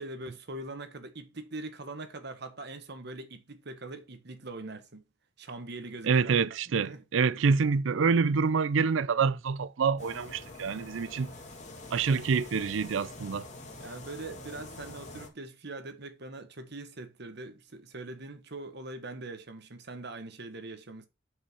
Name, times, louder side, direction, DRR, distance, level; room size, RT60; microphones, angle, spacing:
voice 1, 0.0-5.0 5.4-6.3 6.7-7.0 13.8-21.1, right 2 dB, 60° right, 1.3 m, -42 dB
voice 2, 6.0-11.3 11.9-13.5, right 5 dB, 75° right, 0.5 m, -26 dB
sound 1, 10.0-15.3, left 2 dB, 35° left, 2.1 m, -46 dB
5.6 x 5.6 x 6.2 m
head